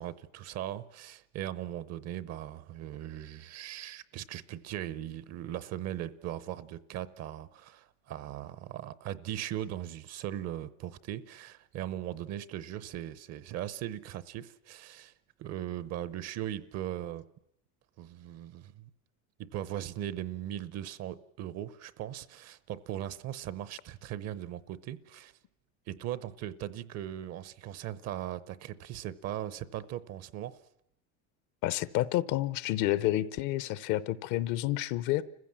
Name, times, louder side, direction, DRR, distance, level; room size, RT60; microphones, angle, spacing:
voice 1, 0.0-15.1 15.4-17.2 18.0-18.9 19.4-25.3 25.9-30.6, right 12 dB, 45° right, 0.8 m, -39 dB
voice 2, 31.6-35.2, left 15 dB, 60° left, 0.8 m, -29 dB
29.0 x 15.5 x 7.4 m
cardioid pair, 130°, 35 cm